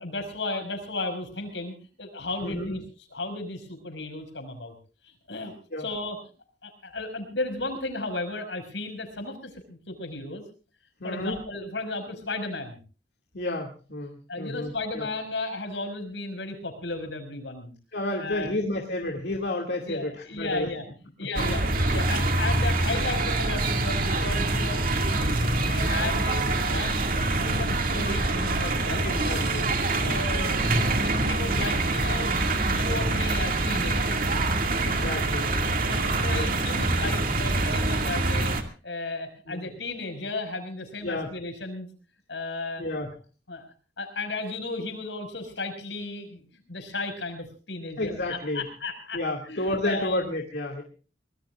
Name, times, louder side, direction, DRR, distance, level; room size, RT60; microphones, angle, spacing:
voice 1, 0.0-2.8 3.1-4.7 5.0-6.2 6.6-10.4 11.0-12.8 14.3-17.7 18.2-18.6 19.9-20.8 21.2-24.8 25.2-27.1 27.3-29.1 30.0-34.2 35.9-41.9 42.3-42.8 43.5-43.7 44.0-50.2, left 2 dB, 85° left, 6 dB, 5.4 m, -34 dB
voice 2, 2.4-2.7 5.7-5.8 11.0-11.4 13.3-15.1 17.9-20.7 21.3-21.5 29.0-30.2 30.7-30.8 34.8-35.5 39.4-39.7 41.0-41.3 42.8-43.1 48.0-48.7 49.1-50.8, left 1 dB, 65° left, 0 dB, 2.3 m, -31 dB
sound 1, 21.4-38.6, right 2 dB, 50° right, 2.1 m, -25 dB
24.5 x 19.5 x 2.4 m, 0.37 s
head